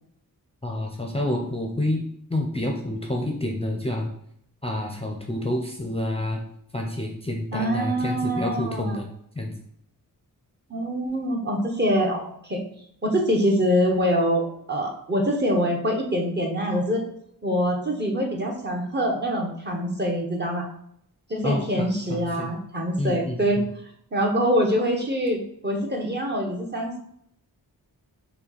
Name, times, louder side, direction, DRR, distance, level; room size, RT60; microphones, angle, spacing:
voice 1, 0.6-2.0 2.3-4.1 4.6-6.4 6.7-9.1 9.3-9.5 21.4-22.5 23.0-23.7, left 1 dB, 15° left, 1 dB, 0.6 m, -28 dB
voice 2, 7.5-9.0 10.7-12.6 13.0-17.0 17.4-20.7 21.3-23.6 24.1-27.0, equal, 30° right, 1 dB, 1.0 m, -24 dB
5.5 x 2.3 x 4.0 m, 0.70 s
wide cardioid pair, 75°, 37 cm